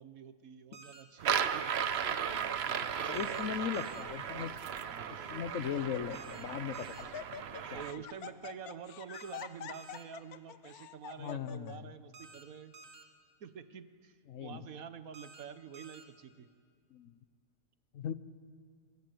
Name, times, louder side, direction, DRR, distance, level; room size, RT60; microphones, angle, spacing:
voice 1, 0.0-1.7 2.1-3.9 4.9-5.3 7.7-12.7 13.4-16.5, right 7 dB, 70° right, 12 dB, 1.4 m, -48 dB
sound 1, 0.7-1.0 3.1-3.4 3.7-4.0 6.1-6.4 6.7-7.0 9.1-9.4 9.7-10.0 12.1-12.4 12.7-13.0 15.1-15.4 15.7-16.0, right 3 dB, 90° right, 2.2 m, -53 dB
sound 2, 1.2-7.9, right 8 dB, 50° right, 0.9 m, -36 dB
voice 2, 3.1-4.5 5.3-7.1 7.7-7.8 11.2-11.9 14.3-14.7 16.9-17.2 17.9-18.1, left 8 dB, 65° left, 13 dB, 1.1 m, -38 dB
Laughter, 3.4-3.8 4.6-4.7 5.2-5.4 5.7-6.5 6.7-11.8, left 9 dB, 90° left, 1.3 m, -47 dB
24.0 x 22.5 x 7.9 m, 2.1 s
omnidirectional pair, 1.5 m